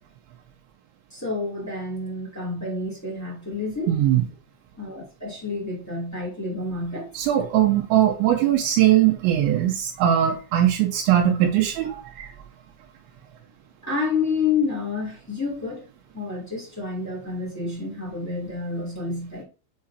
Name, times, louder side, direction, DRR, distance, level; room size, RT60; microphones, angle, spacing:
voice 1, 1.1-4.0 4.8-7.1 13.8-15.9 16.1-19.4, left 4 dB, 10° left, 1.0 m, -29 dB
voice 2, 3.9-4.2 7.1-12.3, right 11 dB, 80° right, 2.8 m, -20 dB
7.5 x 4.7 x 2.7 m
omnidirectional pair, 5.5 m